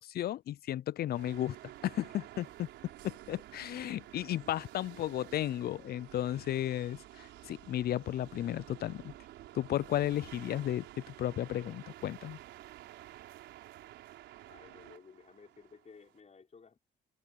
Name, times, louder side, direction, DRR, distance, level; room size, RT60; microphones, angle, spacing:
voice 1, 0.0-1.6 1.8-2.7 3.0-9.1 9.5-12.4, left 12 dB, 60° left, 0.4 m, -34 dB
sound 1, 1.1-16.2, right 14 dB, 90° right, 4.7 m, -51 dB
voice 2, 14.5-16.8, left 5 dB, 40° left, 5.3 m, -56 dB
cardioid pair, 75°, 18 cm